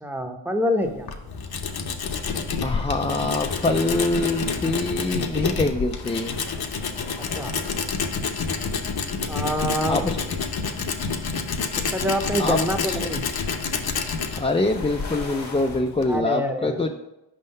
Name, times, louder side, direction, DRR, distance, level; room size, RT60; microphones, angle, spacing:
voice 1, 0.0-1.1 7.2-7.5 9.3-10.0 11.8-13.3 16.1-16.9, equal, 5° right, 5 dB, 0.7 m, -26 dB
Tools, 0.8-16.2, left 5 dB, 55° left, 0.7 m, -29 dB
sound 1, 1.3-15.8, left 3 dB, 85° left, 1.2 m, -45 dB
voice 2, 2.6-6.3 9.9-10.2 12.4-12.6 12.9-13.0 14.4-16.9, left 2 dB, 15° left, 2 dB, 0.3 m, -24 dB
5.2 x 3.7 x 5.4 m, 0.92 s
cardioid pair, 50°, 44 cm